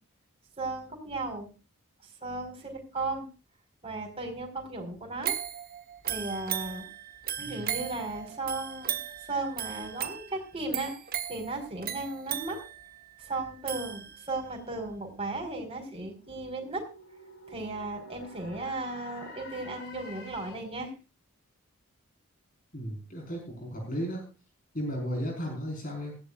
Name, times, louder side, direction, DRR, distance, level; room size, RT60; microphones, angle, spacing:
voice 1, 0.6-1.5 2.2-3.3 3.8-5.3 6.0-6.8 7.4-9.0 9.3-10.9 11.3-12.6 13.2-16.8 17.5-20.9, right 2 dB, 25° right, 2 dB, 4.8 m, -35 dB
sound 1, 5.2-14.5 15.0-15.1, right 10 dB, 40° right, 1.2 m, -37 dB
voice 2, 7.4-7.7 22.7-24.2 24.7-26.1, equal, 40° left, 1 dB, 5.0 m, -35 dB
sound 2, 15.2-20.9, left 2 dB, 55° left, 7.3 m, -49 dB
19.5 x 15.0 x 2.5 m, 0.33 s
head